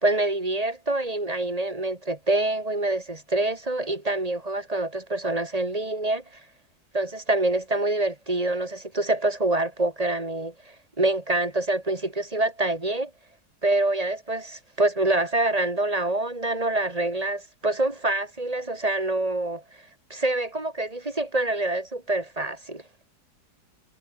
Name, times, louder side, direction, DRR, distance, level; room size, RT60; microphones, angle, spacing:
voice 1, 0.0-6.2 6.9-10.5 11.0-13.1 13.6-19.6 20.1-22.8, right 2 dB, 20° right, 2.5 m, -26 dB
omnidirectional pair, 1.9 m